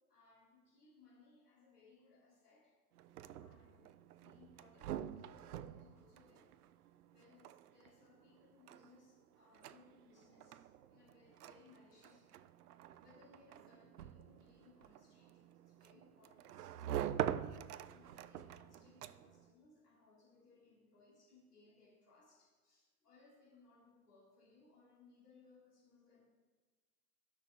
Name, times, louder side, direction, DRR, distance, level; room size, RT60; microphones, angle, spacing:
voice 1, 0.1-2.7 3.4-6.5 6.8-12.4 12.7-26.2, left 3 dB, 90° left, -6 dB, 2.9 m, -66 dB
sound 1, 2.9-19.5, right 11 dB, 80° right, 0.5 m, -46 dB
10.5 x 6.4 x 3.5 m, 1.4 s
hypercardioid pair, 100°, 45 cm